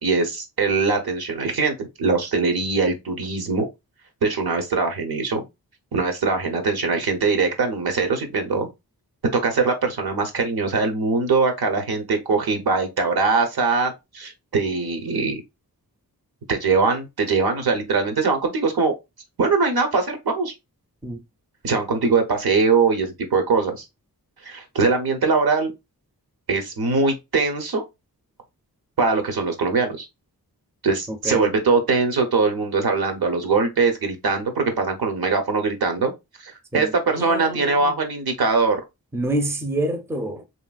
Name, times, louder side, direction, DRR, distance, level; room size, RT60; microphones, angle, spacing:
voice 1, 0.0-3.7 4.2-5.4 5.9-8.7 9.3-15.4 16.5-18.9 19.4-20.5 21.6-23.9 24.4-25.7 26.5-27.8 29.0-30.1 30.8-36.1 36.4-38.8, right 4 dB, 75° right, 0.9 m, -22 dB
voice 2, 31.1-31.5 36.7-38.0 39.1-40.4, right 1 dB, 5° right, 0.5 m, -27 dB
3.0 x 2.9 x 2.4 m
wide cardioid pair, 90°, 37 cm